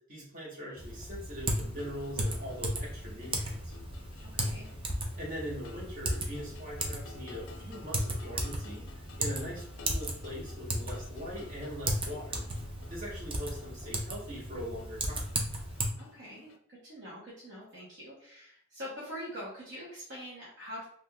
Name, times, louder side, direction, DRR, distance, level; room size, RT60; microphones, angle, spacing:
voice 1, 0.1-3.7 5.2-12.4 12.9-15.3, equal, 40° right, -6 dB, 1.3 m, -42 dB
Typing, 0.8-15.9, right 1 dB, 25° right, 0.4 m, -36 dB
sound 1, 1.6-16.6, left 4 dB, 70° left, 0.4 m, -54 dB
voice 2, 4.2-4.7 16.0-16.5 16.8-20.8, equal, 60° right, -7 dB, 1.0 m, -44 dB
3.4 x 2.5 x 2.2 m, 0.63 s
head